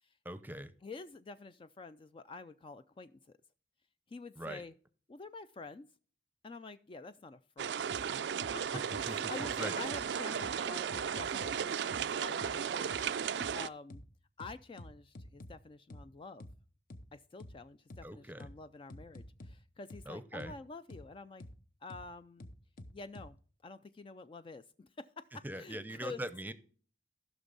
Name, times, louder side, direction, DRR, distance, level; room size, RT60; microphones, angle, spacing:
voice 1, 0.2-0.7 4.4-4.6 8.9-9.1 9.4-9.7 18.0-18.5 20.1-20.6 25.4-26.5, right 1 dB, 10° right, 13 dB, 0.7 m, -42 dB
voice 2, 0.8-3.4 4.1-4.7 5.1-5.9 6.4-7.9 8.5-13.0 13.3-14.0 14.4-16.5 17.1-21.4 21.8-22.5 22.9-23.4 23.6-26.2, left 3 dB, 30° left, 11 dB, 0.3 m, -48 dB
sound 1, 7.6-13.7, right 7 dB, 75° right, 0.4 m, -35 dB
sound 2, 7.9-8.0 8.4-8.5 8.9-9.0 9.4-9.5 9.9-10.0 10.4-10.5 10.9-11.5 11.9-12.0 12.4-12.5 12.9-13.0 13.4-13.5 13.9-14.0 14.4-15.5 15.9-16.0 16.4-16.5 16.9-17.0 17.4-17.5 17.9-18.0 18.4-18.5 18.9-19.5 19.9-20.0 20.4-20.5 20.9-21.0 21.4-21.5 21.9-22.0 22.4-23.3, left 1 dB, 50° left, 0.8 m, -48 dB
15.0 x 6.1 x 4.0 m, 0.43 s
head